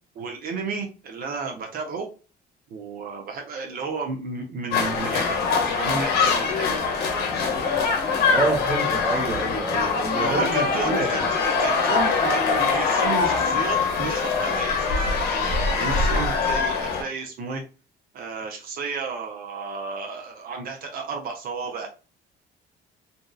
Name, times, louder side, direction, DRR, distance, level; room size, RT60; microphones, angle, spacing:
voice 1, 0.1-2.1 2.7-6.8 10.1-15.1 15.7-17.6 18.1-21.9, right 4 dB, 60° right, 0.6 m, -32 dB
sound 1, 4.7-17.0, left 5 dB, 70° left, 0.7 m, -23 dB
voice 2, 8.3-11.2, right 2 dB, 10° right, 0.8 m, -27 dB
2.6 x 2.3 x 2.3 m
cardioid pair, 110°, 17 cm